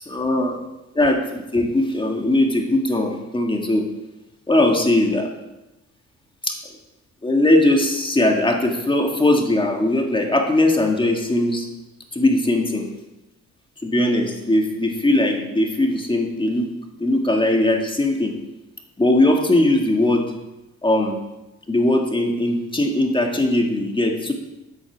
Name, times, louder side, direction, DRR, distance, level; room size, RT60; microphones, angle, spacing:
voice 1, 0.1-0.6 1.0-3.9 4.5-5.3 6.4-6.5 7.2-11.7 12.1-12.9 13.8-16.7 17.0-18.3 19.0-20.2 20.8-21.2 21.7-24.3, left 1 dB, 15° left, 2 dB, 1.9 m, -19 dB
12.5 x 8.4 x 4.7 m, 0.99 s
cardioid pair, 90°, 30 cm